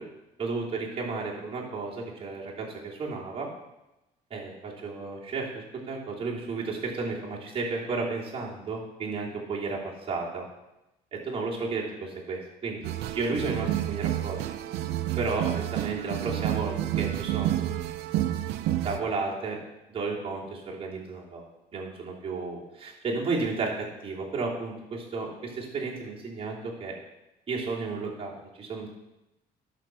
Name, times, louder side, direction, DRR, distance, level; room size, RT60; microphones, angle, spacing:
voice 1, 0.4-3.5 4.3-10.4 11.1-14.4 15.2-17.7 18.8-19.6 19.9-21.4 21.7-26.9 27.5-28.9, right 3 dB, 35° right, -5 dB, 3.0 m, -33 dB
sound 1, 12.8-19.0, right 13 dB, 85° right, 0.6 m, -29 dB
11.5 x 4.5 x 6.2 m, 0.95 s
cardioid pair, 110°, 17 cm